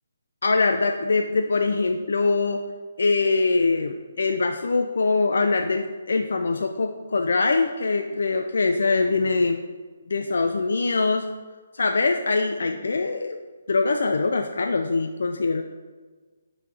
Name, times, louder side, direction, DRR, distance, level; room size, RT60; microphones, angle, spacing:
voice 1, 0.4-2.6 3.0-9.6 10.1-11.3 11.7-13.4 13.7-15.6, left 3 dB, 70° left, 5 dB, 0.4 m, -23 dB
10.5 x 3.8 x 3.3 m, 1.4 s
hypercardioid pair, 160°, 0 cm